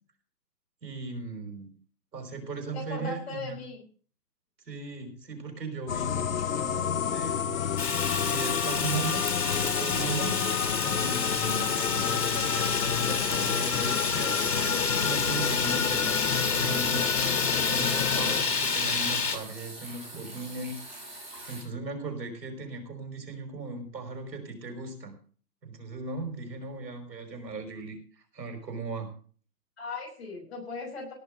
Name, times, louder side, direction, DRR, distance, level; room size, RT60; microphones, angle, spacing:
voice 1, 0.8-1.7 2.1-3.6 4.7-7.6 8.2-10.4 10.8-20.8 21.2-25.2 25.6-28.0 28.3-29.1, right 3 dB, 85° right, 5 dB, 5.4 m, -38 dB
voice 2, 2.7-3.8 29.8-31.1, left 3 dB, 40° left, -1 dB, 5.8 m, -38 dB
sound 1, 5.9-18.4, left 8 dB, 55° left, 0.6 m, -30 dB
sound 2, 7.0-8.7 8.9-9.3 9.6-9.7 14.3-21.6, right 1 dB, 5° right, 1.0 m, -45 dB
Fire, 7.8-19.4, left 5 dB, 85° left, 3.8 m, -29 dB
17.5 x 6.3 x 6.4 m, 0.43 s
hypercardioid pair, 170°, 49 cm